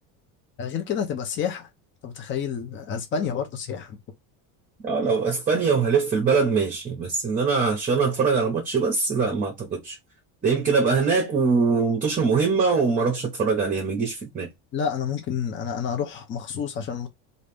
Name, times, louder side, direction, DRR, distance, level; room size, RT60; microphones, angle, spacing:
voice 1, 0.6-1.7 2.0-4.0 14.7-17.1, left 7 dB, 30° left, 0.7 m, -29 dB
voice 2, 4.8-10.0 10.4-14.5, right 5 dB, 20° right, 0.9 m, -22 dB
3.2 x 2.7 x 3.3 m
cardioid pair, 165°, 39 cm